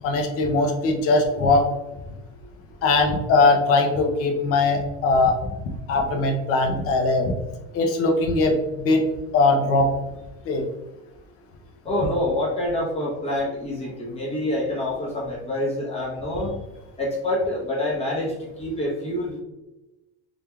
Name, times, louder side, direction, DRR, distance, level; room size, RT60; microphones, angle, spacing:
voice 1, 0.0-1.7 2.8-5.5 5.9-7.3 7.7-9.0 9.3-9.9 10.5-10.6, left 3 dB, 35° left, 4 dB, 0.5 m, -20 dB
voice 2, 11.8-16.5 17.0-19.4, left 1 dB, 15° left, -4 dB, 0.9 m, -26 dB
3.5 x 3.2 x 2.2 m, 1.0 s
cardioid pair, 165°, 38 cm